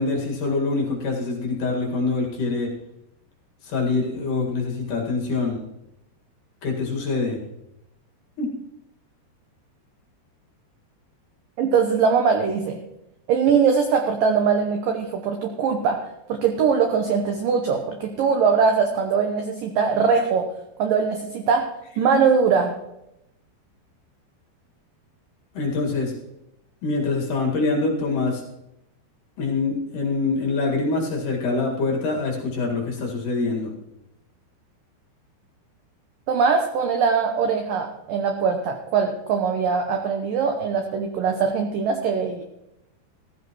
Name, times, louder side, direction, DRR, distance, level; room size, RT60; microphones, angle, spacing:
voice 1, 0.0-2.7 3.6-5.6 6.6-7.4 8.4-8.5 25.5-26.1 26.8-28.4 29.4-33.7, left 3 dB, 55° left, -1 dB, 3.0 m, -25 dB
voice 2, 11.6-12.8 13.3-16.0 16.3-20.5 20.8-21.7 22.0-22.7 36.3-42.4, right 6 dB, 80° right, 4 dB, 2.0 m, -21 dB
16.0 x 14.5 x 3.0 m, 0.85 s
omnidirectional pair, 5.2 m